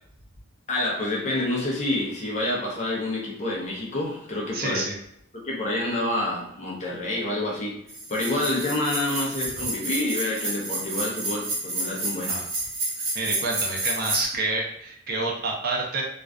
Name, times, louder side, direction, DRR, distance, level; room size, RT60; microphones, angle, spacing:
voice 1, 0.7-4.9 5.4-7.8 8.1-12.4, left 1 dB, 35° left, -3 dB, 0.6 m, -28 dB
voice 2, 4.5-4.9 12.3-12.4 13.1-16.0, right 3 dB, 45° right, -1 dB, 0.5 m, -28 dB
sound 1, 7.9-14.2, right 2 dB, 75° right, 1.1 m, -30 dB
2.4 x 2.3 x 2.2 m, 0.74 s
head